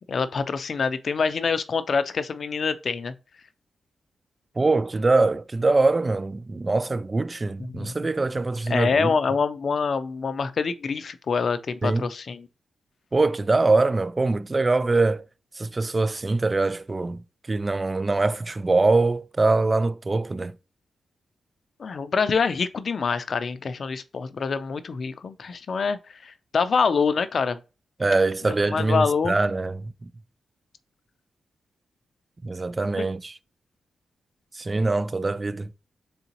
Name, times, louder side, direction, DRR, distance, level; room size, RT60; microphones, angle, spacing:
voice 1, 0.1-3.1 7.7-7.9 8.7-12.5 21.8-27.6 28.4-29.4 33.0-33.1, left 5 dB, 60° left, 0.5 m, -25 dB
voice 2, 4.6-9.1 11.8-12.1 13.1-15.2 15.6-17.2 17.5-20.5 28.0-29.9 32.4-33.3 34.5-35.7, right 3 dB, 35° right, 0.3 m, -23 dB
3.9 x 3.5 x 2.9 m
supercardioid pair, 50°, 0 cm